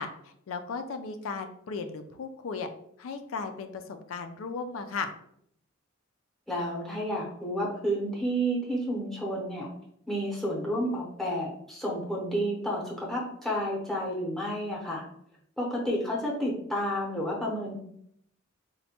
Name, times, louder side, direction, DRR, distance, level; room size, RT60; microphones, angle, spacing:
voice 1, 0.0-2.7 3.0-5.1, left 4 dB, 75° left, 7 dB, 0.4 m, -36 dB
voice 2, 6.5-9.7 10.1-15.0 15.6-17.7, equal, ahead, -4 dB, 0.7 m, -30 dB
4.2 x 2.2 x 2.8 m, 0.70 s
head